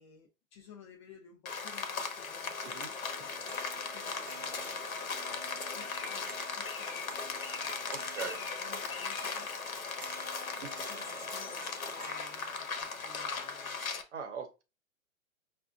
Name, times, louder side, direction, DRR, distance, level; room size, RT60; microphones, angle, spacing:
voice 1, 0.0-3.3 3.7-9.5 10.5-13.8, left 6 dB, 20° left, 1 dB, 0.5 m, -56 dB
Rain, 1.5-14.0, left 5 dB, 80° left, 0.9 m, -38 dB
sound 1, 2.6-9.7 10.0-12.8, right 5 dB, 25° right, 0.7 m, -52 dB
voice 2, 7.9-8.4 10.6-10.7 14.1-14.6, right 6 dB, 55° right, 4 dB, 1.0 m, -40 dB
5.5 x 2.5 x 2.4 m, 0.28 s
figure-of-eight pair, 120°, 41 cm